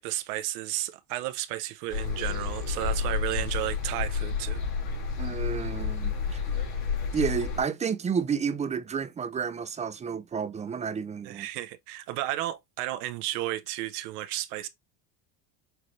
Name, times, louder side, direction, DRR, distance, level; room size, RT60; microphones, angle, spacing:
voice 1, 0.0-4.6 6.5-6.6 11.2-14.7, right 15 dB, 80° right, 0.8 m, -33 dB
sound 1, 1.9-7.6, left 5 dB, 85° left, 3.0 m, -30 dB
voice 2, 5.2-6.4 7.1-11.5, right 6 dB, 15° right, 0.4 m, -31 dB
5.9 x 2.6 x 3.2 m
supercardioid pair, 110°, 46 cm